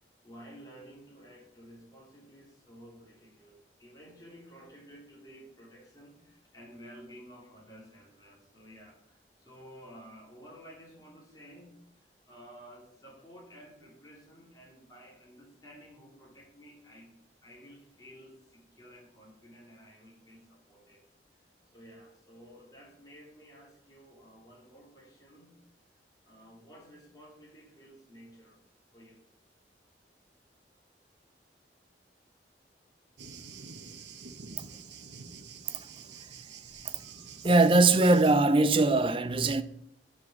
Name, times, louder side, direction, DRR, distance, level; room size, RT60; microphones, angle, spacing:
voice 1, 0.2-17.2 17.4-21.0 21.7-25.6 26.2-28.6 28.9-29.2, equal, 20° left, 3.3 m, -53 dB
Thunder, 33.2-38.3, right 5 dB, 80° right, 1.0 m, -47 dB
voice 2, 37.4-39.6, right 2 dB, 30° right, 0.5 m, -21 dB
9.3 x 5.4 x 7.2 m
head